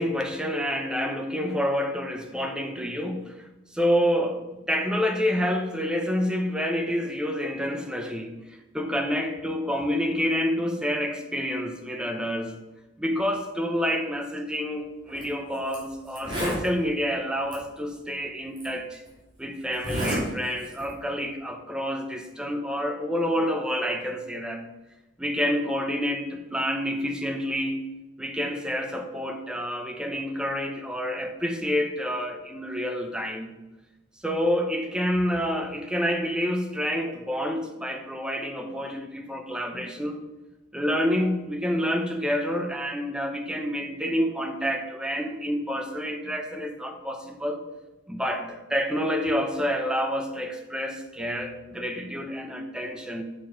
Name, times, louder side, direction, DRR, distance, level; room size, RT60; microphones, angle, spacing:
voice 1, 0.0-3.4 3.7-8.3 8.7-12.5 13.0-19.0 19.4-24.6 25.2-27.8 28.2-33.6 34.2-40.2 40.7-47.6 48.1-53.2, equal, 5° right, 4 dB, 0.9 m, -28 dB
Zipper (clothing), 15.1-15.2 15.7-15.8 16.1-16.7 17.5-17.6 18.6-18.7 19.7-20.2 20.6-20.9, equal, 25° right, 2.8 m, -30 dB
6.8 x 6.5 x 4.7 m, 1.0 s
head